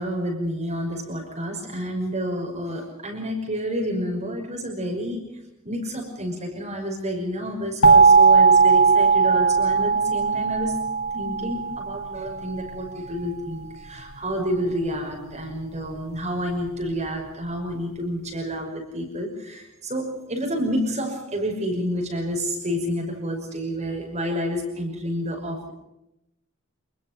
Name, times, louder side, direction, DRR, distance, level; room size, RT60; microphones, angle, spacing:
voice 1, 0.0-5.4 5.6-10.9 11.1-25.7, equal, 30° right, 1 dB, 5.9 m, -29 dB
sound 1, 7.8-12.6, right 5 dB, 65° left, 0.9 m, -18 dB
27.5 x 21.5 x 5.5 m, 0.85 s
head